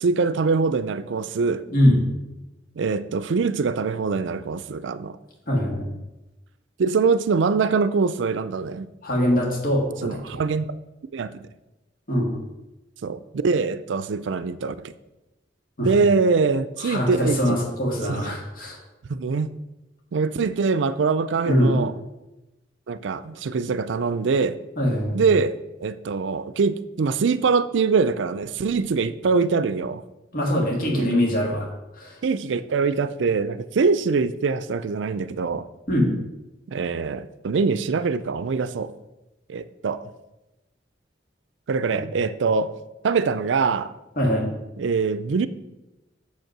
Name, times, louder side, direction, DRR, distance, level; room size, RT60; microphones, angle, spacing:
voice 1, 0.0-1.6 2.8-5.2 6.8-8.9 10.0-10.7 11.1-11.4 13.0-14.9 15.8-17.6 18.1-18.3 19.1-19.5 20.1-21.9 22.9-24.6 25.1-30.0 30.9-31.2 32.2-35.7 36.7-38.9 39.5-40.0 41.7-42.7 43.0-43.9 44.8-45.5, right 4 dB, 80° right, 14 dB, 0.4 m, -23 dB
voice 2, 1.7-2.0 5.5-5.9 9.0-10.4 12.1-12.4 15.8-15.9 16.8-18.8 21.5-21.8 24.8-25.2 30.3-31.7 32.0-32.2 35.9-36.1 41.9-42.0 44.2-44.5, equal, 50° left, -1 dB, 2.3 m, -22 dB
7.1 x 5.4 x 6.0 m, 1.0 s
head